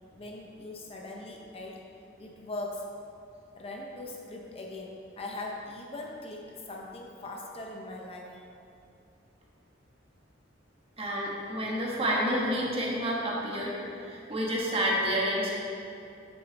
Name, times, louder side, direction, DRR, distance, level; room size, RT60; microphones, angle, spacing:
voice 1, 0.2-1.8 2.2-2.9 3.6-8.5, left 2 dB, 30° left, 0 dB, 0.6 m, -40 dB
voice 2, 11.0-15.5, equal, 30° right, -4 dB, 1.4 m, -29 dB
7.1 x 6.7 x 4.0 m, 2.6 s
head